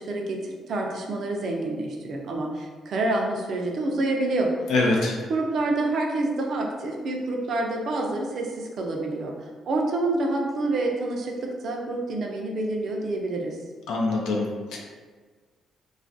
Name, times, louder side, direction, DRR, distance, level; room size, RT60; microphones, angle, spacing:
voice 1, 0.0-4.5 5.3-9.3 9.7-13.6, right 2 dB, 60° right, 0 dB, 0.4 m, -27 dB
voice 2, 4.7-5.2 13.9-14.8, left 2 dB, 85° left, -1 dB, 0.5 m, -24 dB
2.3 x 2.2 x 2.5 m, 1.5 s
cardioid pair, 90°, 0 cm